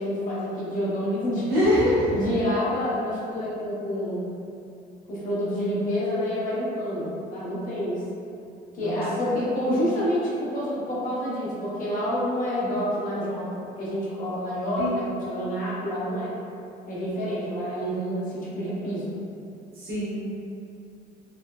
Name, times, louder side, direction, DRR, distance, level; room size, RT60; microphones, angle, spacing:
voice 1, 0.0-1.5 2.1-4.2 5.1-8.0 8.7-16.3 16.9-19.1, equal, 55° left, -8 dB, 0.9 m, -28 dB
voice 2, 1.5-2.1 8.8-9.4 14.8-15.0 19.8-20.2, left 1 dB, 65° right, -10 dB, 1.2 m, -24 dB
3.4 x 2.0 x 2.2 m, 2.6 s
cardioid pair, 110°, 17 cm